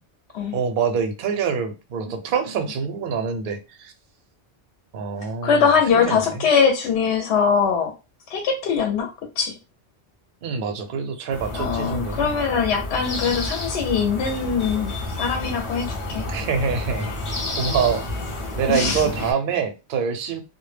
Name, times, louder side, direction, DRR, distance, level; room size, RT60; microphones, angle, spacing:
voice 1, 0.5-3.9 4.9-6.4 10.4-12.3 16.3-17.1 17.6-18.0 18.6-20.4, right 6 dB, 60° right, 0.6 m, -25 dB
voice 2, 5.4-7.9 8.3-9.1 9.4-9.5 11.5-16.2 18.7-19.0, left 6 dB, 75° left, 0.8 m, -22 dB
sound 1, 11.3-19.3, left 2 dB, 35° left, 0.5 m, -30 dB
2.1 x 2.1 x 3.1 m
omnidirectional pair, 1.2 m